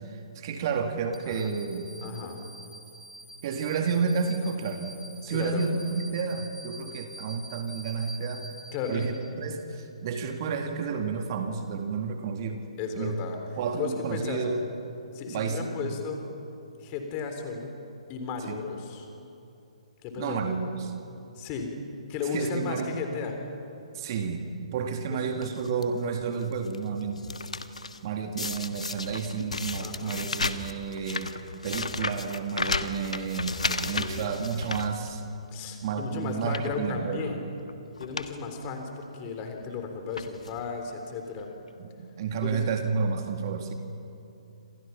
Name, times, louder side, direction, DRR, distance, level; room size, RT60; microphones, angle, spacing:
voice 1, 0.0-1.9 3.4-4.9 5.2-8.5 8.9-12.6 13.0-13.2 13.6-14.6 15.3-15.9 18.5-18.6 20.2-20.9 22.3-22.9 23.9-24.5 24.7-27.3 28.0-31.3 31.6-33.6 33.9-35.2 35.8-37.3 41.8-43.7, right 5 dB, 35° right, 5 dB, 2.1 m, -31 dB
sound 1, 1.1-9.6, right 1 dB, ahead, 3.1 m, -46 dB
voice 2, 2.0-2.4 5.3-5.6 8.7-9.0 12.8-13.4 13.8-14.4 15.1-16.2 16.8-17.7 18.1-19.1 20.0-20.6 21.4-21.7 22.1-23.4 25.1-25.2 29.8-30.3 33.7-34.3 35.5-37.4 38.0-41.5 42.4-42.7, left 5 dB, 25° left, 5 dB, 3.7 m, -34 dB
sound 2, 25.4-25.8 26.4-26.8 27.0-28.0 28.4-35.5 35.9-36.0 36.4-36.8 37.6-37.7 38.0-38.3 38.6-38.7 39.6-39.8 40.1-40.6 41.4-41.5 41.7-41.8, left 3 dB, 70° left, 1.4 m, -33 dB
29.0 x 27.5 x 5.9 m, 2.8 s
figure-of-eight pair, 130°, 4 cm